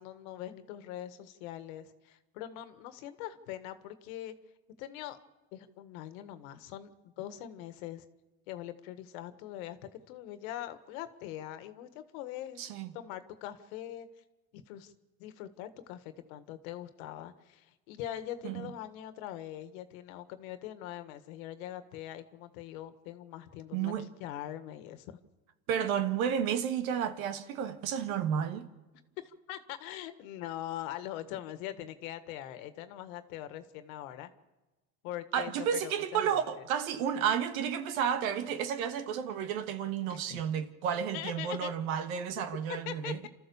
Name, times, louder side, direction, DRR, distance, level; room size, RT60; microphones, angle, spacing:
voice 1, 0.0-4.3 4.8-5.2 5.5-6.9 7.2-8.0 8.5-14.1 14.5-14.9 15.2-25.2 25.8-25.9 29.2-34.3 35.0-36.6 40.1-40.4 41.1-41.7 42.8-43.3, left 12 dB, 85° left, 1.7 m, -42 dB
voice 2, 12.6-12.9 18.4-18.7 23.7-24.1 25.7-28.7 35.3-43.2, right 8 dB, 90° right, 1.7 m, -32 dB
29.0 x 13.5 x 7.1 m
supercardioid pair, 105°, 41 cm